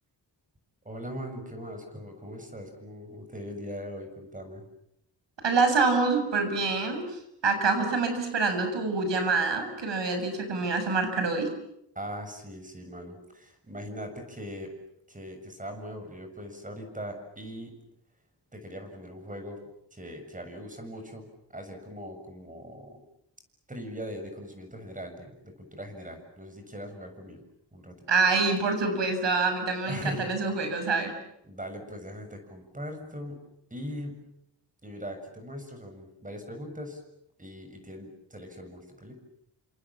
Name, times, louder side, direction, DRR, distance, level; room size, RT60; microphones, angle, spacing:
voice 1, 0.9-4.6 12.0-14.7 15.1-17.7 18.5-19.6 19.9-21.2 21.5-23.0 23.7-27.4 27.7-27.9 29.8-30.3 31.4-33.4 33.7-34.2 34.8-37.0 37.4-39.1, equal, 20° right, 6 dB, 7.0 m, -40 dB
voice 2, 5.4-7.0 7.4-11.5 28.1-31.1, right 4 dB, 90° right, 7 dB, 7.1 m, -26 dB
29.5 x 26.5 x 7.4 m, 0.78 s
wide cardioid pair, 145°, 42 cm